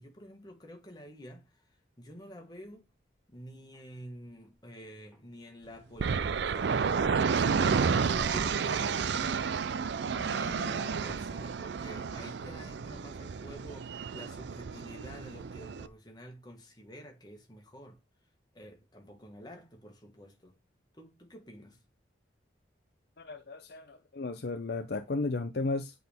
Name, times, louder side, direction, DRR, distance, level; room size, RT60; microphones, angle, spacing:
voice 1, 0.0-2.9 3.3-9.7 10.0-18.0 18.5-20.6 20.9-21.8, equal, 20° left, 1.5 m, -49 dB
sound 1, 2.7-2.8 3.2-3.3 3.5-3.9 4.2-4.5 5.1-5.2 5.8-5.9 6.2-8.6 8.9-9.4 9.8-10.0 10.4-10.8 11.1-11.5 11.8-12.2 12.6-12.8 13.0-13.1 13.4-13.7 14.2-14.4 14.6-14.7 15.0-15.4 15.8-15.9, equal, ahead, 2.1 m, -49 dB
sound 2, 6.0-15.9, right 5 dB, 60° right, 0.4 m, -31 dB
voice 2, 23.2-25.9, left 3 dB, 55° left, 0.6 m, -34 dB
8.0 x 3.9 x 3.4 m
head